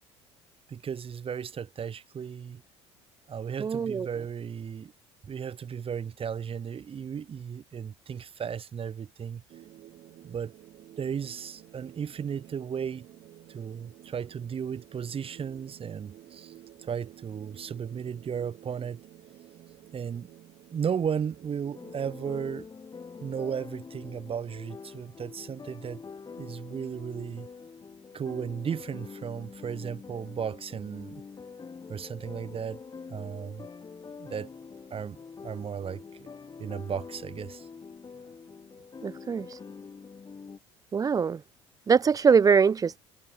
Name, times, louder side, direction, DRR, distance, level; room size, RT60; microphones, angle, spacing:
voice 1, 0.7-2.6 3.3-4.9 5.3-9.4 10.2-10.5 11.0-13.0 13.5-16.5 16.8-19.0 19.9-20.3 20.7-22.7 23.2-26.0 26.4-27.5 28.1-31.2 31.9-32.8 33.1-33.7 34.2-34.5 34.9-35.2 35.4-36.3 36.6-37.7, right 7 dB, 40° right, 6.5 m, -35 dB
voice 2, 3.6-4.1 39.0-39.6 40.9-41.4 41.9-43.0, right 6 dB, 25° right, 0.4 m, -23 dB
sound 1, 9.5-22.6, right 13 dB, 60° right, 7.8 m, -52 dB
sound 2, 21.7-40.6, left 5 dB, 30° left, 2.4 m, -45 dB
hypercardioid pair, 70°, 14 cm